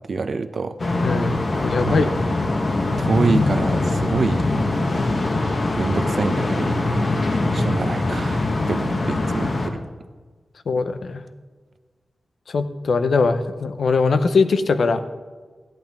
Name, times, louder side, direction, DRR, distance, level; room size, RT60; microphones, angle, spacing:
voice 1, 0.1-0.7 1.9-2.1 3.0-4.4 5.8-6.8 7.5-9.8, right 4 dB, 55° right, 9 dB, 0.6 m, -26 dB
sound 1, 0.8-9.7, left 2 dB, 45° left, 1.2 m, -22 dB
voice 2, 1.0-2.1 10.7-11.2 12.5-15.0, left 4 dB, 75° left, 10 dB, 0.7 m, -21 dB
14.0 x 10.5 x 3.5 m, 1.4 s
wide cardioid pair, 145°, 0 cm